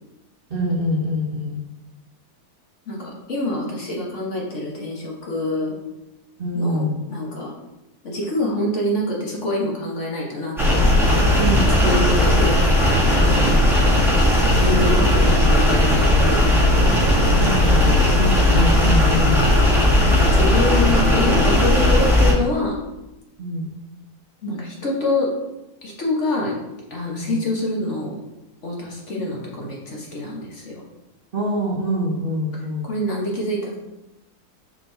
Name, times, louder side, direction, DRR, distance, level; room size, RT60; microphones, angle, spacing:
voice 1, 0.5-1.6 6.4-7.0 11.4-11.8 13.2-13.6 17.4-19.6 23.4-23.7 27.2-27.4 31.3-32.9, equal, 40° right, -4 dB, 1.0 m, -25 dB
voice 2, 2.9-5.7 6.5-7.5 8.0-10.8 11.3-13.6 14.1-18.1 20.0-22.8 24.4-25.3 25.8-26.6 26.9-28.2 28.6-30.8 32.8-33.8, left 2 dB, 45° left, -3 dB, 1.5 m, -26 dB
sound 1, 10.6-22.3, left 1 dB, ahead, 1.4 m, -16 dB
6.0 x 4.5 x 3.9 m, 0.94 s
omnidirectional pair, 1.8 m